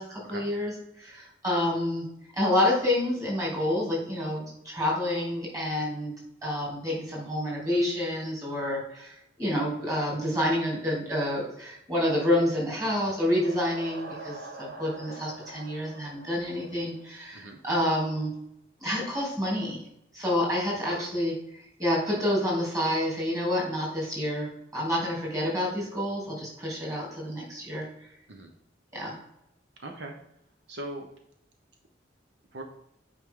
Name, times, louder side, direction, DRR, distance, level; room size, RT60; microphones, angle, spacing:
voice 1, 0.0-2.1 2.4-6.1 6.4-18.3 18.8-19.8 20.1-27.8 28.9-29.2, left 1 dB, 20° right, -4 dB, 2.9 m, -28 dB
sound 1, 12.8-17.4, right 2 dB, 55° right, 1.4 m, -45 dB
voice 2, 29.8-30.2 30.7-31.1 32.5-32.6, right 1 dB, 75° right, 3 dB, 0.9 m, -39 dB
8.8 x 4.9 x 3.7 m, 0.80 s
head